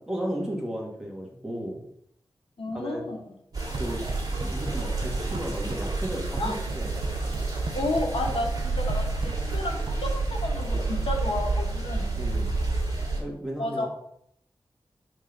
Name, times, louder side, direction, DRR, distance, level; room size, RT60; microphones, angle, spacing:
voice 1, 0.0-1.8 2.7-3.0 3.7-4.0 4.4-7.0 12.1-12.5 13.2-13.9, equal, 5° right, -2 dB, 1.7 m, -34 dB
voice 2, 2.6-3.3 6.4-6.5 7.7-12.2 13.6-13.9, left 2 dB, 80° left, 2 dB, 1.0 m, -31 dB
sound 1, 3.5-13.2, right 3 dB, 40° right, 1.8 m, -29 dB
sound 2, 3.5-10.5, right 3 dB, 70° right, 0.7 m, -41 dB
5.2 x 3.8 x 5.2 m, 0.70 s
wide cardioid pair, 95°, 9 cm